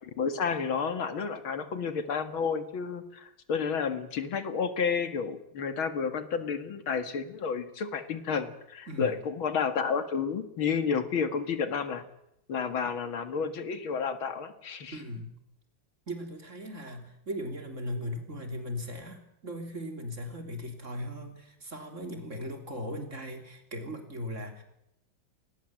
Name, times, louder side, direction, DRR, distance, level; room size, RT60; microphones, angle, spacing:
voice 1, 0.0-12.0 12.5-15.0, left 6 dB, 90° left, 10 dB, 2.7 m, -31 dB
voice 2, 8.9-9.2 14.9-15.4 16.1-24.6, equal, 35° right, 5 dB, 3.6 m, -38 dB
26.0 x 20.5 x 7.7 m, 0.81 s
omnidirectional pair, 2.2 m